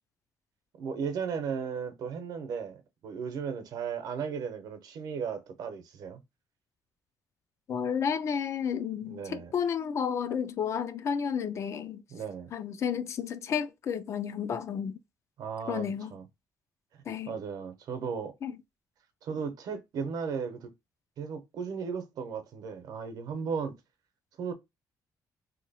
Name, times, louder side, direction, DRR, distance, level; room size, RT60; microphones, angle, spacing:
voice 1, 0.8-6.2 9.0-9.5 12.1-12.5 15.4-16.3 17.3-18.3 19.2-20.7 21.2-23.7 24.4-24.5, right 6 dB, 70° right, 0.8 m, -35 dB
voice 2, 7.7-12.0 12.5-15.0 15.7-16.1 17.1-17.4 18.4-18.5, left 7 dB, 45° left, 0.4 m, -31 dB
2.9 x 2.3 x 4.1 m
cardioid pair, 160°, 7 cm